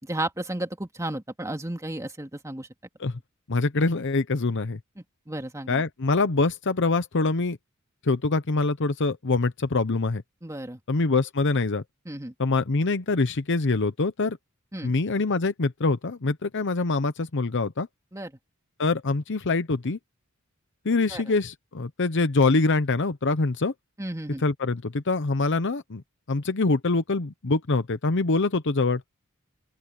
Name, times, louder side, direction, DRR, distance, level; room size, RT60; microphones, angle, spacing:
voice 1, 0.0-2.7 5.3-5.8 10.4-10.8 12.1-12.3 14.7-14.9 18.1-18.3 21.1-21.2 24.0-24.4, right 1 dB, 15° right, 2.3 m, -33 dB
voice 2, 3.5-4.8 5.7-7.6 8.0-10.2 10.9-11.8 12.4-14.4 14.8-17.9 18.8-20.0 20.8-23.7 24.4-26.0 26.3-29.0, left 3 dB, 60° left, 0.8 m, -24 dB
open air
head